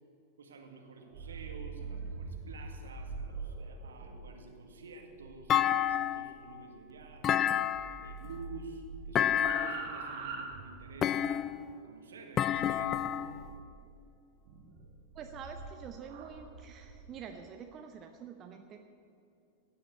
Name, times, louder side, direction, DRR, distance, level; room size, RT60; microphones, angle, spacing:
voice 1, 0.4-7.4 8.0-11.4 11.8-13.2, right 4 dB, 65° right, 3 dB, 1.9 m, -49 dB
sound 1, 1.0-7.5 7.7-11.1 12.5-13.8 14.4-17.1, right 4 dB, 50° right, 2.0 m, -44 dB
Thump thud, 5.5-6.4 7.2-8.2 9.1-9.9 11.0-11.7 12.4-13.4, left 10 dB, 30° left, 0.5 m, -29 dB
voice 2, 15.1-18.8, right 7 dB, 30° right, 5 dB, 0.9 m, -47 dB
17.5 x 6.9 x 8.4 m, 2.7 s
figure-of-eight pair, 90°, 0 cm